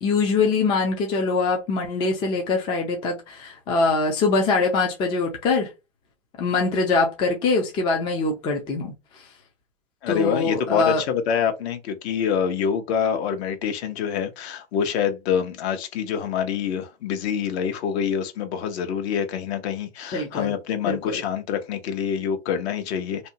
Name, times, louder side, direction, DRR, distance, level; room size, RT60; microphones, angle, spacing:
voice 1, 0.0-5.7 6.4-8.9 10.1-11.0 20.1-20.5 20.9-21.2, left 4 dB, 15° left, 0.3 m, -23 dB
voice 2, 10.0-23.3, left 7 dB, 55° left, 0.9 m, -26 dB
2.7 x 2.2 x 2.6 m
hypercardioid pair, 115°, 40 cm